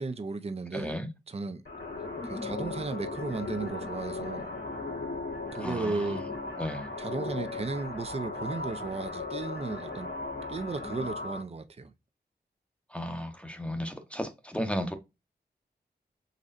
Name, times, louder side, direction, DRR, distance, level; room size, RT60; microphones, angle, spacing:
voice 1, 0.0-1.0 1.3-1.6 2.2-4.5 5.5-6.2 7.0-10.1 10.5-11.9, right 3 dB, 35° right, 0.6 m, -35 dB
voice 2, 0.7-1.1 5.6-6.2 6.6-6.9 12.9-14.9, equal, 5° left, 0.8 m, -34 dB
sound 1, 1.7-11.4, left 3 dB, 80° left, 1.8 m, -37 dB
4.0 x 3.0 x 2.5 m
cardioid pair, 45°, 18 cm